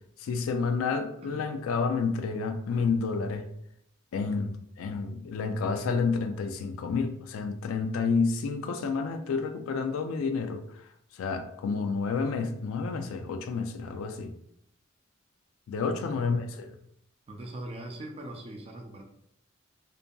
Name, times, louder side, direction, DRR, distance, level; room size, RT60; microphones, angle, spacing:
voice 1, 0.2-3.5 4.1-10.6 11.1-14.3 15.7-16.7, left 4 dB, 90° left, 7 dB, 0.3 m, -30 dB
voice 2, 16.0-16.5 17.3-19.0, right 1 dB, 30° right, 2 dB, 0.3 m, -41 dB
2.6 x 2.6 x 2.2 m, 0.73 s
head